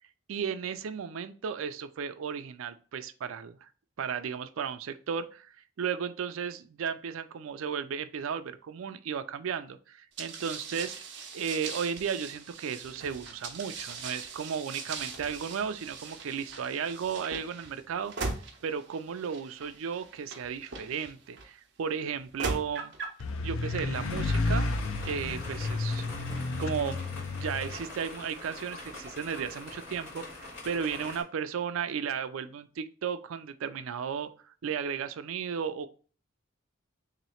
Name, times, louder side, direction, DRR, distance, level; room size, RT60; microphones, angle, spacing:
voice 1, 0.3-3.7 4.0-10.9 11.3-18.1 18.6-22.9 23.4-24.8 25.0-26.2 26.6-27.0 27.3-34.3 34.6-35.9, right 7 dB, 85° right, 11 dB, 0.4 m, -34 dB
sound 1, 10.2-21.4 22.1-23.2, right 4 dB, 60° right, 0.8 m, -40 dB
sound 2, 23.2-27.8, left 3 dB, 80° left, 0.4 m, -31 dB
sound 3, 23.9-31.2, left 2 dB, 65° left, 1.8 m, -44 dB
3.1 x 2.9 x 4.2 m, 0.39 s
head